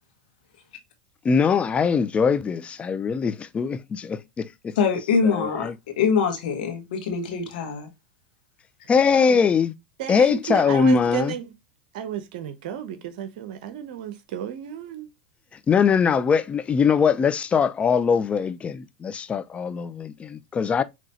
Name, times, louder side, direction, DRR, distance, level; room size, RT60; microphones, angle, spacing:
voice 1, 1.2-4.7 5.2-5.7 8.9-9.7 10.1-11.3 15.7-20.8, left 6 dB, 25° left, 0.5 m, -22 dB
voice 2, 4.8-5.7 6.0-7.9, left 5 dB, 75° left, 1.7 m, -23 dB
voice 3, 10.0-11.5 11.9-15.1, right 10 dB, 65° right, 0.8 m, -33 dB
6.0 x 3.0 x 2.9 m
hypercardioid pair, 100°, 5 cm